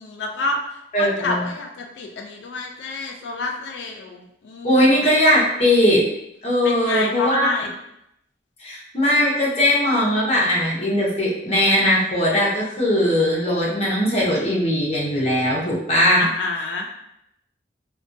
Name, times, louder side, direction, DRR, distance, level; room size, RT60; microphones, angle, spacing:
voice 1, 0.0-4.9 6.6-7.7 12.8-12.9 16.2-16.9, left 3 dB, 75° left, 2 dB, 0.3 m, -28 dB
voice 2, 0.9-1.5 4.6-6.0 6.4-7.5 8.6-16.2, left 1 dB, 35° left, -5 dB, 0.7 m, -19 dB
2.5 x 2.2 x 2.5 m, 0.81 s
head